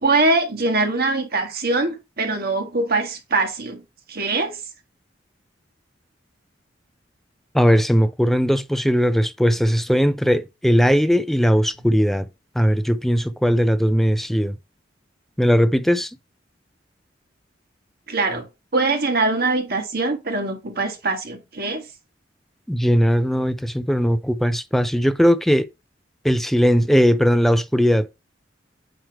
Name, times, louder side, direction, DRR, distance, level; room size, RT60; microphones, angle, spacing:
voice 1, 0.0-3.8 4.1-4.6 18.1-18.5 18.7-21.8, right 3 dB, 55° right, 1.7 m, -22 dB
voice 2, 7.5-12.3 12.6-14.6 15.4-16.1 22.7-25.7 26.2-28.1, equal, ahead, 0.4 m, -18 dB
9.1 x 3.3 x 4.7 m
head